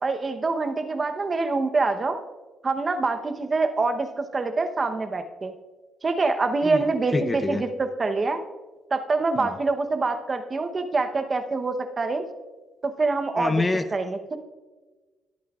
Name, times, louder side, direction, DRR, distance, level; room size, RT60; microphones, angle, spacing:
voice 1, 0.0-2.2 2.6-5.5 6.0-8.4 8.9-12.2 12.8-13.6 13.9-14.4, right 3 dB, 35° right, 7 dB, 0.8 m, -25 dB
voice 2, 7.1-7.6 9.4-9.6 13.4-13.9, left 2 dB, 20° left, 10 dB, 0.6 m, -26 dB
21.5 x 8.5 x 2.4 m, 1.3 s
cardioid pair, 90°, 0 cm